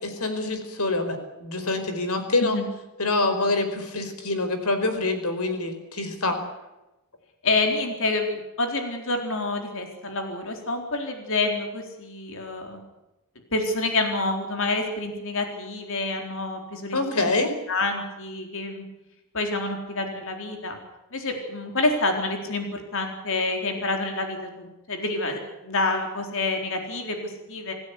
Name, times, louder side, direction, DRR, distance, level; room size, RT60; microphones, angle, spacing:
voice 1, 0.0-2.6 3.0-6.4 16.9-17.5, left 2 dB, 80° left, 7 dB, 4.9 m, -26 dB
voice 2, 7.4-8.3 8.6-12.8 13.5-17.3 17.7-18.9 19.3-20.8 21.1-27.7, left 2 dB, 60° left, 3 dB, 4.1 m, -28 dB
26.5 x 16.5 x 8.4 m, 0.97 s
head